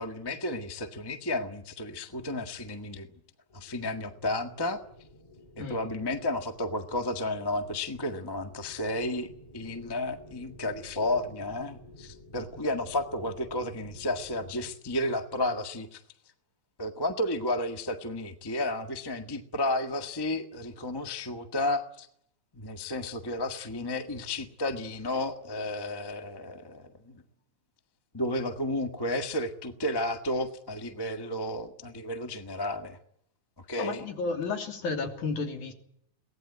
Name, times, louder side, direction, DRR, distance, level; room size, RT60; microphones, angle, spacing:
voice 1, 0.0-3.1 3.5-4.8 5.6-9.3 9.5-16.0 16.8-22.1 22.5-27.2 28.1-33.0 33.7-34.0, left 1 dB, 35° left, 7 dB, 0.3 m, -32 dB
sound 1, 3.5-14.7, left 1 dB, 10° left, 2.3 m, -52 dB
voice 2, 33.8-35.7, left 4 dB, 65° left, 4 dB, 4.4 m, -32 dB
23.0 x 18.5 x 9.7 m, 0.70 s
omnidirectional pair, 3.7 m